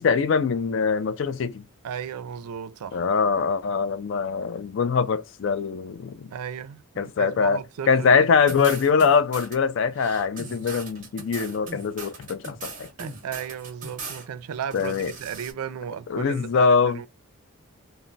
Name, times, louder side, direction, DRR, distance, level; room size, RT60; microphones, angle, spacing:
voice 1, 0.0-1.6 2.9-6.3 7.0-12.9 14.7-15.1 16.1-17.0, left 5 dB, 55° left, 0.3 m, -23 dB
voice 2, 1.8-3.0 6.3-8.2 13.0-17.1, right 8 dB, 90° right, 0.4 m, -35 dB
sound 1, 8.5-9.6 9.9-14.3 14.6-15.5, right 4 dB, 35° right, 0.8 m, -39 dB
2.1 x 2.0 x 3.8 m
head